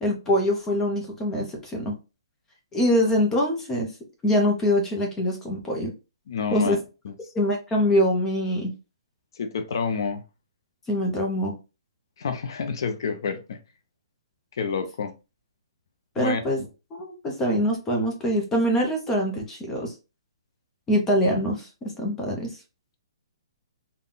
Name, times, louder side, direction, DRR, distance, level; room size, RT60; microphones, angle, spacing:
voice 1, 0.0-2.0 2.7-3.9 4.2-5.9 6.5-6.8 7.3-8.7 10.9-11.6 16.2-16.6 16.9-19.9 20.9-22.6, equal, 10° left, 0.6 m, -24 dB
voice 2, 6.3-6.8 7.0-7.2 9.4-10.2 12.2-13.6 14.5-15.1 16.2-16.4, left 5 dB, 50° left, 0.5 m, -28 dB
3.8 x 2.2 x 3.7 m
hypercardioid pair, 170°, 3 cm